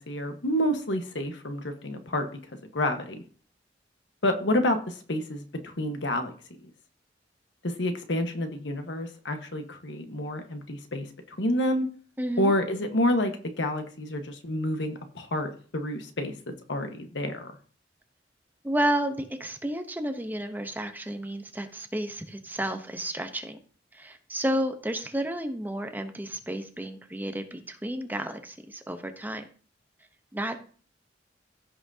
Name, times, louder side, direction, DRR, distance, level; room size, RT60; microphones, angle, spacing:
voice 1, 0.0-2.3 2.7-3.2 4.2-6.3 7.6-11.9 12.4-16.3 16.7-17.5, left 1 dB, 75° left, 6 dB, 1.3 m, -29 dB
voice 2, 12.2-12.5 18.6-23.6 23.9-29.5 30.3-30.6, right 1 dB, 10° right, 7 dB, 0.8 m, -31 dB
15.5 x 5.9 x 2.8 m, 0.42 s
head